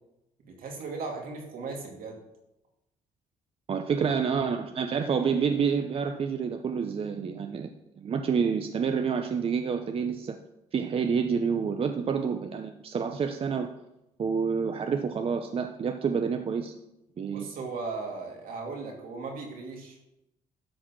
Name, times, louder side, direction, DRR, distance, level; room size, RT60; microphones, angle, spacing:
voice 1, 0.4-2.2 4.0-4.1 17.3-20.0, right 4 dB, 70° right, 0 dB, 2.6 m, -37 dB
voice 2, 3.7-7.7 8.0-10.4 10.7-13.7 14.2-16.7 17.2-17.5, right 6 dB, 40° right, 6 dB, 0.7 m, -28 dB
12.5 x 4.2 x 6.0 m, 0.88 s
cardioid pair, 100°, 15 cm